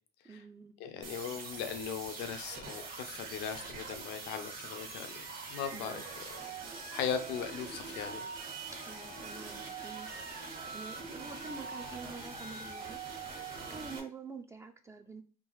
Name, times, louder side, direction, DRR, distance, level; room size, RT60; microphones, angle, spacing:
voice 1, 0.2-0.7 5.7-6.0 8.8-10.1 10.7-13.0 13.7-15.2, right 4 dB, 15° right, 6 dB, 0.3 m, -47 dB
voice 2, 0.8-6.0 6.9-8.2, left 7 dB, 85° left, 7 dB, 0.6 m, -38 dB
sound 1, 1.0-14.0, right 4 dB, 55° right, 1.4 m, -43 dB
3.7 x 2.4 x 3.1 m, 0.39 s
cardioid pair, 110°, 17 cm